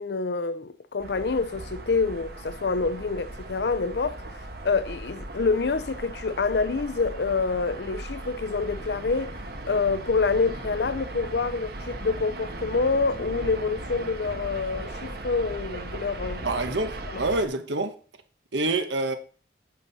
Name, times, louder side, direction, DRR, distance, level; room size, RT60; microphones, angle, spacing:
voice 1, 0.0-4.2 4.6-9.4 9.7-16.6 17.1-17.2, left 4 dB, 65° left, 0.5 m, -27 dB
sound 1, 1.0-17.5, right 1 dB, 55° right, 1.2 m, -38 dB
voice 2, 16.4-17.9 18.5-19.2, right 2 dB, 80° right, 1.2 m, -26 dB
9.3 x 7.6 x 4.1 m
head